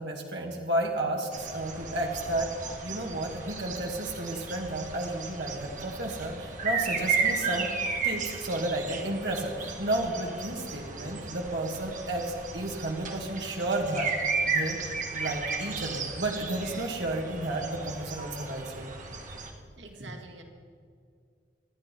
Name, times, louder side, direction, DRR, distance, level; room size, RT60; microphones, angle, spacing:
voice 1, 0.0-2.5 2.8-7.7 8.0-14.1 14.4-14.8 15.1-18.9, right 1 dB, 65° right, 0 dB, 2.0 m, -32 dB
sound 1, 1.3-19.5, right 4 dB, 45° right, 1.8 m, -34 dB
voice 2, 19.8-20.4, right 2 dB, 85° right, 3 dB, 2.2 m, -43 dB
26.5 x 10.5 x 4.5 m, 2.3 s
head